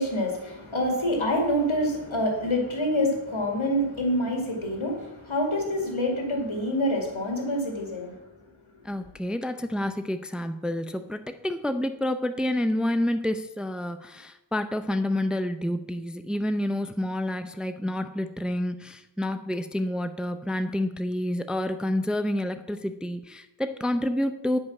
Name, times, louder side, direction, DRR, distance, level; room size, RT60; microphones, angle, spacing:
voice 1, 0.0-8.1, equal, 85° left, 1 dB, 2.3 m, -26 dB
voice 2, 8.8-24.6, left 1 dB, ahead, 9 dB, 0.5 m, -29 dB
9.5 x 5.4 x 5.9 m, 0.91 s
wide cardioid pair, 40°, 47 cm